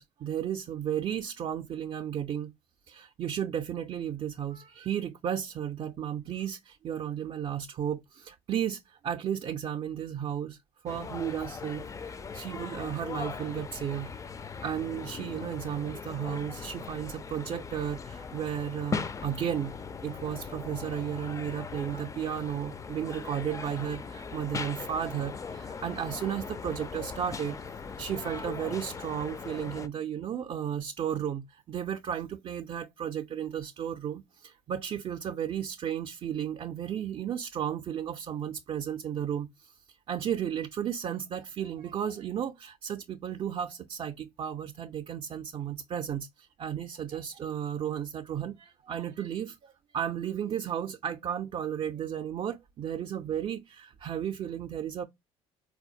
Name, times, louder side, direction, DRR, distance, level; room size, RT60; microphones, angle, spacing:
voice 1, 0.0-2.5 2.9-10.6 10.8-14.1 14.6-19.7 20.0-27.6 28.0-39.7 40.1-55.0, right 9 dB, 45° right, 0.4 m, -34 dB
sound 1, 10.9-29.9, left 5 dB, 25° left, 0.3 m, -39 dB
4.1 x 2.1 x 2.6 m
hypercardioid pair, 70°, 14 cm